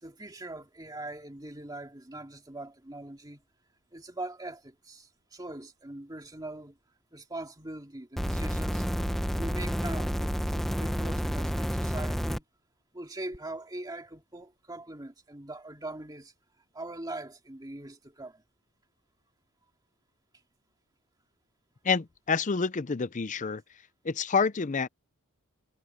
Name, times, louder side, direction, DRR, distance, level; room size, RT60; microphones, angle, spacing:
voice 1, 0.0-3.4 3.9-6.8 7.1-8.9 9.3-12.4 12.9-16.3 16.7-18.4, right 2 dB, 15° right, 2.3 m, -41 dB
sound 1, 8.2-12.4 13.3-13.4, equal, ahead, 1.0 m, -30 dB
voice 2, 21.8-23.6 24.0-24.9, left 5 dB, 35° left, 0.5 m, -28 dB
head